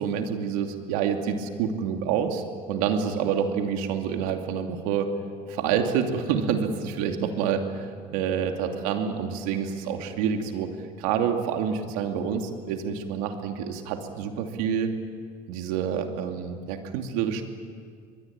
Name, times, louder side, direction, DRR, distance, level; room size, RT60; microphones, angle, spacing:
voice 1, 0.0-5.1 5.5-10.7 11.0-14.9 15.5-17.4, right 7 dB, 85° right, 4 dB, 2.7 m, -27 dB
26.0 x 21.5 x 8.9 m, 2.1 s
supercardioid pair, 75°, 19 cm